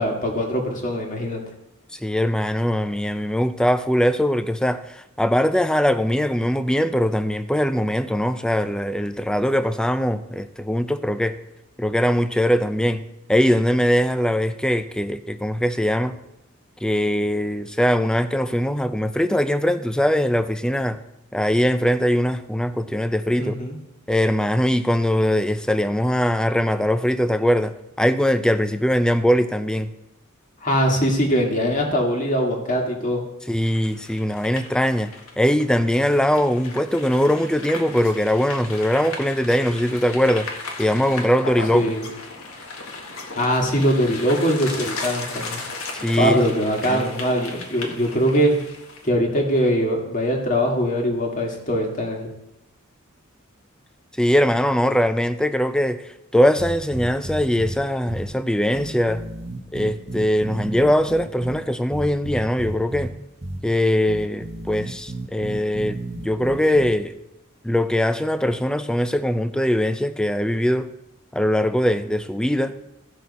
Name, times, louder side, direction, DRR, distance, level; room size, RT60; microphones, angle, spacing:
voice 1, 0.0-1.4 23.4-23.8 30.6-33.2 41.7-42.0 43.4-45.6 46.2-48.5 49.0-52.3, equal, 35° left, 1.9 m, -22 dB
voice 2, 1.9-11.4 11.8-16.2 16.8-21.0 21.3-23.6 24.1-29.9 33.5-40.5 40.8-41.9 45.9-46.4 46.8-47.1 54.2-59.2 59.7-63.1 63.6-66.0 66.2-67.1 67.6-70.9 71.3-72.7, equal, 5° left, 0.4 m, -21 dB
sound 1, 33.6-49.1, left 3 dB, 70° left, 1.7 m, -35 dB
sound 2, 56.6-57.8 58.1-58.3 58.7-61.6 61.9-63.1 63.4-63.6 64.1-66.9, right 1 dB, 30° right, 0.9 m, -32 dB
15.5 x 6.5 x 4.1 m
head